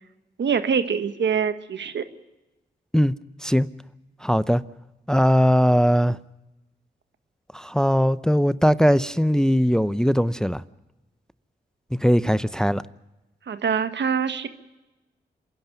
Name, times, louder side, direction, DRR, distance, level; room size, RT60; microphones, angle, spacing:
voice 1, 0.4-2.1 13.5-14.5, right 6 dB, 75° right, 1.5 m, -24 dB
voice 2, 4.2-4.6 5.1-6.2 7.5-10.6 12.0-12.8, equal, 5° left, 0.7 m, -20 dB
27.0 x 11.5 x 9.1 m
cardioid pair, 50°, 19 cm